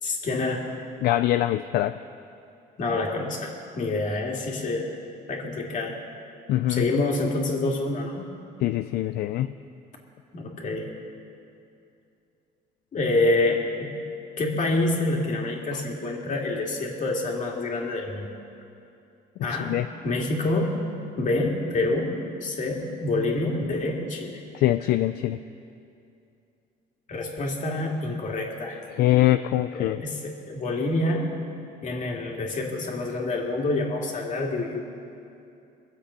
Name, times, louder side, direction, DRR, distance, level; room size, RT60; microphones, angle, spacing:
voice 1, 0.0-0.7 2.8-4.9 5.3-6.0 6.7-8.3 10.3-10.9 12.9-13.9 14.4-18.4 19.4-20.8 21.2-24.4 27.1-28.8 29.7-31.3 31.8-34.8, left 2 dB, 50° left, 0 dB, 2.3 m, -27 dB
voice 2, 1.0-2.0 6.5-7.0 8.6-9.5 15.7-15.8 19.7-19.9 24.5-25.4 29.0-30.0, left 14 dB, 70° left, 10 dB, 0.4 m, -23 dB
22.5 x 7.7 x 5.6 m, 2.6 s
cardioid pair, 110°, 17 cm